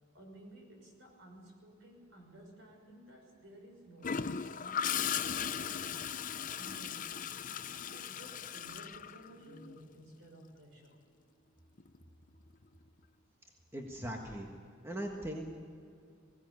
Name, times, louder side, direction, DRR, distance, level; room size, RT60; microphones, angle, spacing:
voice 1, 0.1-6.0 6.5-7.3 7.9-11.0, right 1 dB, 60° right, 2 dB, 5.9 m, -54 dB
Gurgling / Toilet flush, 4.0-9.8 11.8-12.0, left 8 dB, 40° left, 0.5 m, -37 dB
voice 2, 13.7-14.5 14.8-15.5, right 1 dB, 10° right, 1 dB, 1.6 m, -39 dB
21.0 x 17.0 x 9.7 m, 2.4 s
head